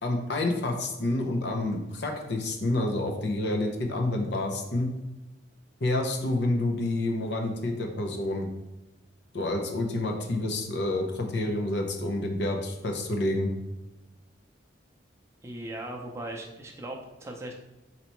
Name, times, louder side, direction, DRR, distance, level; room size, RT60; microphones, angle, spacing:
voice 1, 0.0-4.9 5.8-8.5 9.3-13.5, left 2 dB, 60° left, 3 dB, 0.7 m, -28 dB
voice 2, 15.4-17.5, right 1 dB, 15° right, 0 dB, 0.6 m, -38 dB
4.1 x 2.9 x 4.4 m, 1.0 s
head